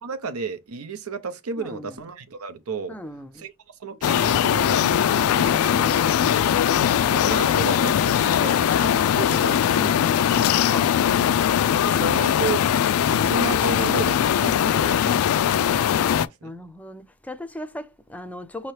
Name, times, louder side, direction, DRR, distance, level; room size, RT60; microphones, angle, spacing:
voice 1, 0.0-3.0 3.4-3.5 3.8-6.4 7.1-10.1 11.8-12.6 13.0-15.2 15.5-16.5, right 4 dB, 85° right, 0.6 m, -33 dB
voice 2, 1.6-2.0 2.9-3.5 9.7-10.3 10.6-10.9 16.4-18.7, left 1 dB, 5° left, 0.4 m, -37 dB
sound 1, 4.0-16.3, left 9 dB, 80° left, 0.3 m, -20 dB
5.5 x 2.9 x 3.1 m
head